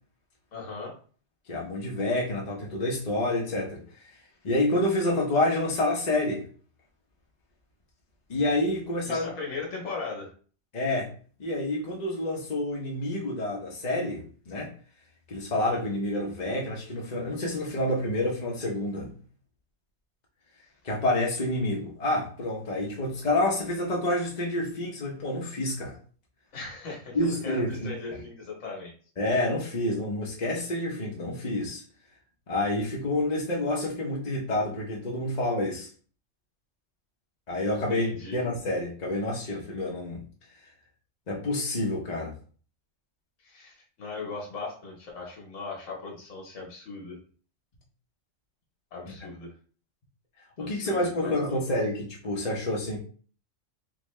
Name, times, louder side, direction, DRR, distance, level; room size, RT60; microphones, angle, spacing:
voice 1, 0.5-0.9 9.0-10.3 26.5-28.9 37.7-38.4 43.4-47.2 48.9-49.5 50.6-51.6, left 3 dB, 75° left, -1 dB, 1.4 m, -38 dB
voice 2, 1.5-3.8 4.4-6.5 8.3-9.3 10.7-11.1 11.4-14.7 15.3-19.1 20.8-26.0 27.1-28.2 29.2-31.8 32.5-35.9 37.5-40.2 41.3-42.4 50.6-53.0, left 1 dB, 40° left, -3 dB, 0.8 m, -28 dB
3.6 x 2.7 x 3.1 m, 0.42 s
omnidirectional pair, 1.3 m